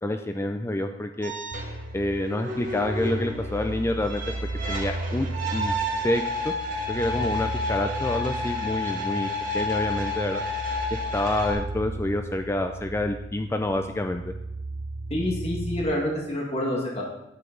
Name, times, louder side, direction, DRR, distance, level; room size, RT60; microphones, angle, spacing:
voice 1, 0.0-1.3 1.9-4.2 4.7-5.7 6.0-6.5 6.9-9.3 9.5-10.4 10.9-14.3, left 1 dB, 15° left, 6 dB, 0.4 m, -28 dB
sound 1, 1.2-11.5, left 2 dB, 50° right, 2.0 m, -31 dB
sound 2, 1.5-15.8, right 2 dB, 65° right, 0.7 m, -35 dB
voice 2, 15.1-17.0, left 1 dB, 35° left, -2 dB, 1.8 m, -27 dB
9.2 x 8.0 x 3.9 m, 0.88 s
head